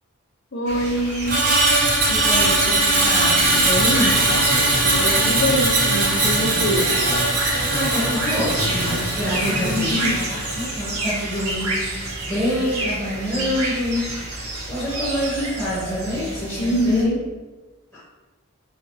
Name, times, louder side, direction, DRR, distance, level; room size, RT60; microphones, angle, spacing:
voice 1, 0.5-1.4 4.8-6.9 9.4-10.1 10.6-10.7 16.6-17.2, equal, 55° left, 0 dB, 0.8 m, -24 dB
sound 1, 0.7-17.0, right 1 dB, 90° right, 0.9 m, -30 dB
Screech, 1.3-11.6 11.9-12.2, right 2 dB, 40° right, 0.7 m, -21 dB
voice 2, 2.1-4.2 7.7-9.9 10.3-14.1 14.7-17.1, equal, 10° left, -13 dB, 1.5 m, -26 dB
sound 2, 3.4-11.5, left 1 dB, 5° right, 0.9 m, -30 dB
5.0 x 2.5 x 3.2 m, 1.2 s
head